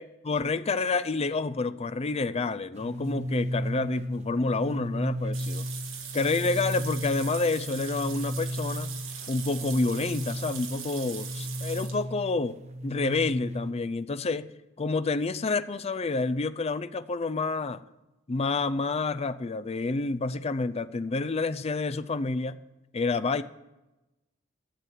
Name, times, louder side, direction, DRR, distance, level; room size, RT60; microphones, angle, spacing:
voice 1, 0.0-5.7 6.1-8.9 9.3-12.6 12.8-14.5 14.8-17.8 18.3-22.6 22.9-23.4, left 3 dB, 30° left, 12 dB, 0.5 m, -28 dB
sound 1, 2.7-13.7, equal, 35° right, 0.8 m, -34 dB
sound 2, 5.3-12.0, right 7 dB, 75° right, 1.8 m, -40 dB
13.0 x 7.4 x 9.4 m, 1.0 s
head